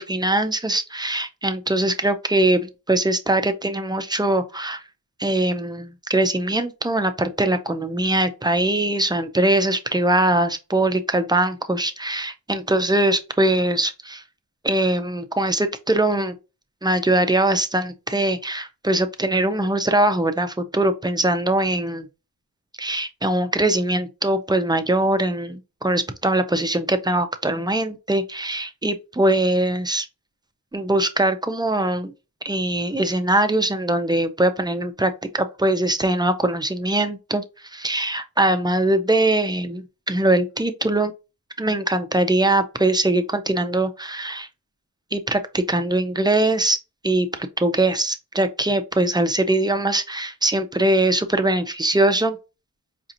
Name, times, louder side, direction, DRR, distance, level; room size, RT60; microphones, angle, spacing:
voice 1, 0.0-4.8 5.2-14.2 14.6-16.4 16.8-22.1 22.8-30.1 30.7-32.1 32.4-41.1 41.6-44.5 45.1-46.8 47.0-52.4, right 1 dB, 10° right, 0.4 m, -22 dB
4.9 x 2.8 x 2.5 m
wide cardioid pair, 110°, 36 cm